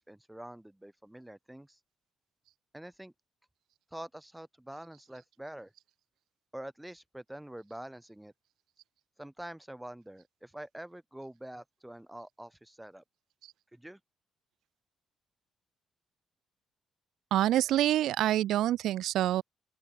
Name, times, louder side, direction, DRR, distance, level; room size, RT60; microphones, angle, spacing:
voice 1, 0.0-1.8 2.7-3.1 3.9-5.7 6.5-8.3 9.2-13.0 13.7-14.0, right 1 dB, 5° right, 4.6 m, -46 dB
voice 2, 17.3-19.4, right 13 dB, 80° right, 0.6 m, -26 dB
open air
cardioid pair, 90°, 0 cm